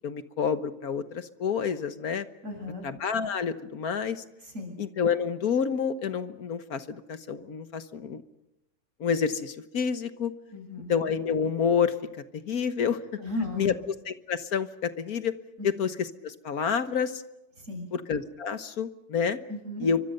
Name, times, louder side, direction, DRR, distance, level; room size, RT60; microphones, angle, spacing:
voice 1, 0.0-2.3 2.8-4.2 4.8-8.2 9.0-10.3 10.9-11.9 12.5-13.0 13.6-13.7 14.1-15.3 15.8-15.9 16.2-17.2 17.9-19.4 19.8-20.0, left 6 dB, 65° left, 10 dB, 1.6 m, -28 dB
voice 2, 2.4-2.9 4.4-4.7 10.5-10.9 13.2-13.8 15.6-15.7 17.6-17.9 19.5-19.9, left 2 dB, 50° right, 3 dB, 7.9 m, -35 dB
28.5 x 24.5 x 6.7 m, 0.91 s
omnidirectional pair, 1.8 m